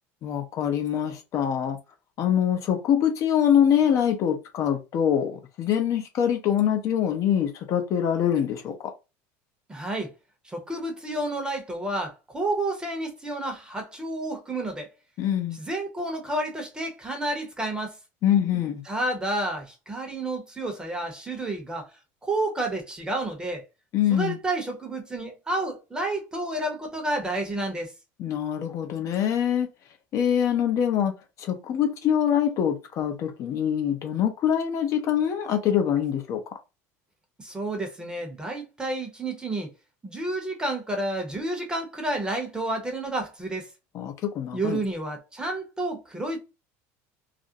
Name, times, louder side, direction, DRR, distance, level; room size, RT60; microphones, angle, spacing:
voice 1, 0.2-1.8 2.2-8.9 15.2-15.6 18.2-18.8 23.9-24.4 28.2-29.7 30.1-31.1 31.4-36.4 43.9-44.8, left 9 dB, 50° left, 0.6 m, -24 dB
voice 2, 9.7-10.1 10.4-14.9 15.5-18.0 18.9-21.9 22.2-23.6 24.1-27.9 37.4-39.7 40.0-43.7 44.5-46.4, right 2 dB, 10° right, 0.8 m, -30 dB
2.4 x 2.1 x 2.7 m
supercardioid pair, 115°, 7 cm